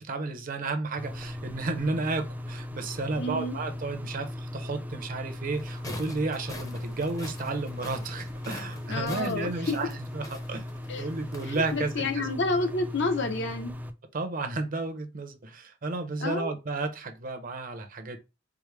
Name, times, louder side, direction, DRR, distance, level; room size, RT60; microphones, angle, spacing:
voice 1, 0.0-10.7 11.0-12.3 14.1-18.2, right 3 dB, 45° right, 0.6 m, -32 dB
sound 1, 1.0-13.9, left 1 dB, 10° right, 0.3 m, -38 dB
voice 2, 3.2-3.6 8.9-9.8 10.9-11.1 11.4-13.7 16.2-16.5, left 2 dB, 65° left, 0.8 m, -29 dB
sound 2, 5.5-12.0, left 2 dB, 20° left, 0.7 m, -45 dB
4.7 x 2.0 x 3.2 m
head